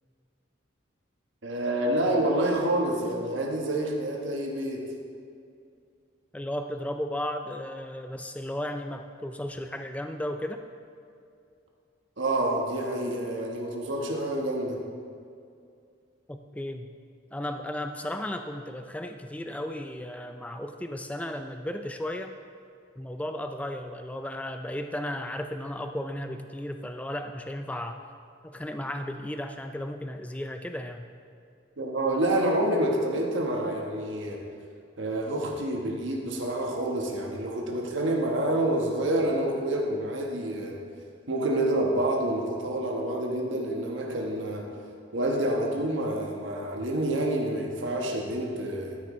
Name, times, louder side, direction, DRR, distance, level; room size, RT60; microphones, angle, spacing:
voice 1, 1.4-4.9 12.2-14.8 31.8-34.4 35.0-40.8 41.3-44.7 45.1-49.0, right 1 dB, 75° right, 0 dB, 1.2 m, -28 dB
voice 2, 6.3-10.6 16.3-16.9 17.3-22.3 23.0-28.0 28.4-31.1, left 1 dB, 5° left, 6 dB, 0.3 m, -34 dB
13.0 x 9.5 x 3.1 m, 2.4 s
head